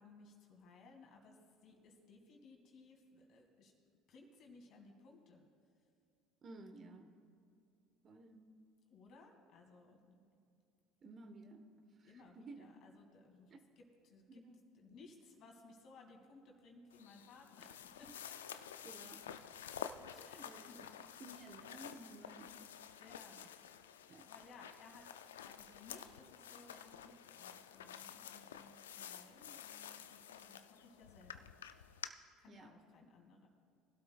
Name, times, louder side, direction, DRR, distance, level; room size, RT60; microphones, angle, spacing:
voice 1, 0.0-3.7 4.1-5.4 8.9-10.2 12.0-14.4 14.7-18.4 20.0-20.8 23.0-23.4 24.3-31.5 32.4-33.5, left 3 dB, 55° left, 2 dB, 2.5 m, -60 dB
voice 2, 6.4-7.1 8.0-8.5 10.2-10.3 11.0-11.6 12.0-12.7 13.5-13.6 14.3-14.6 18.8-19.4 20.4-20.9 21.2-22.5 23.4-23.5 24.1-24.3 32.5-32.7, right 2 dB, 40° right, 6 dB, 1.2 m, -55 dB
sound 1, 16.9-32.1, left 9 dB, 85° left, 0.4 m, -51 dB
22.0 x 12.0 x 2.4 m, 2.5 s
hypercardioid pair, 70°, 0 cm